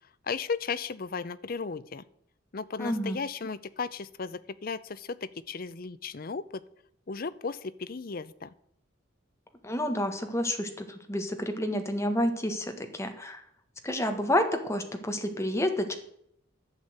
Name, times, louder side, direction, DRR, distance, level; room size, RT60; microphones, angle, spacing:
voice 1, 0.2-2.0 2.5-6.6 7.1-8.5, left 5 dB, 50° left, 16 dB, 0.6 m, -35 dB
voice 2, 2.8-3.2 9.6-13.4 13.8-16.0, left 1 dB, 15° left, 6 dB, 1.5 m, -29 dB
12.0 x 7.2 x 8.0 m, 0.71 s
head